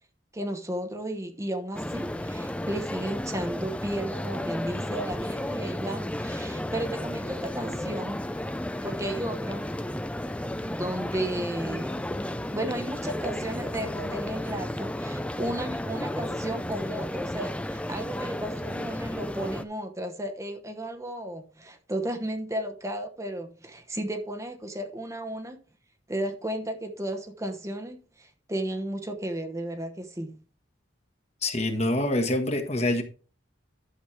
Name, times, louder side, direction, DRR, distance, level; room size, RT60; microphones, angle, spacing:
voice 1, 0.3-8.2 8.8-9.6 10.6-12.0 12.5-25.6 26.1-30.4, right 1 dB, 15° right, 1.0 m, -34 dB
sound 1, 1.7-19.6, left 1 dB, 5° left, 0.5 m, -33 dB
voice 2, 31.4-33.0, left 1 dB, 35° left, 1.4 m, -25 dB
11.5 x 7.2 x 3.3 m
head